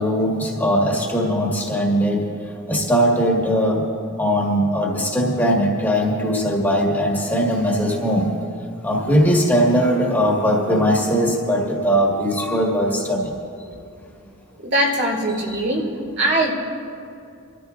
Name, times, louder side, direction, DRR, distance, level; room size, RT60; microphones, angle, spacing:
voice 1, 0.0-2.2 2.7-3.8 4.2-8.3 8.8-13.3 15.5-15.6, equal, 10° left, -3 dB, 1.8 m, -20 dB
voice 2, 14.6-15.9 16.2-16.5, right 1 dB, 55° right, 0 dB, 2.0 m, -21 dB
26.0 x 13.5 x 2.6 m, 2.4 s
head